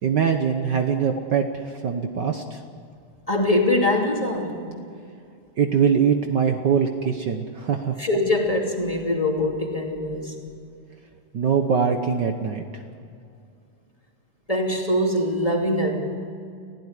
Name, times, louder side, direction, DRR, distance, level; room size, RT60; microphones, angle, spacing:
voice 1, 0.0-2.6 5.6-7.9 11.3-12.6, right 7 dB, 85° right, 5 dB, 0.9 m, -22 dB
voice 2, 3.3-4.7 8.0-10.4 14.5-16.0, left 1 dB, 10° left, 0 dB, 2.6 m, -23 dB
29.5 x 15.5 x 9.8 m, 2.4 s
omnidirectional pair, 3.6 m